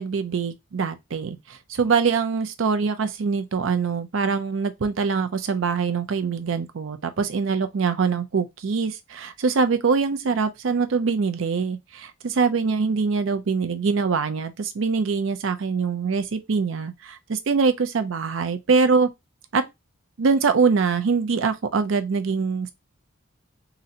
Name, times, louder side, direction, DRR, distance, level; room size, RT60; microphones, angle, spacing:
voice 1, 0.0-19.1 19.5-19.6 20.2-22.7, right 5 dB, 70° right, 0.5 m, -23 dB
3.8 x 2.1 x 2.7 m
head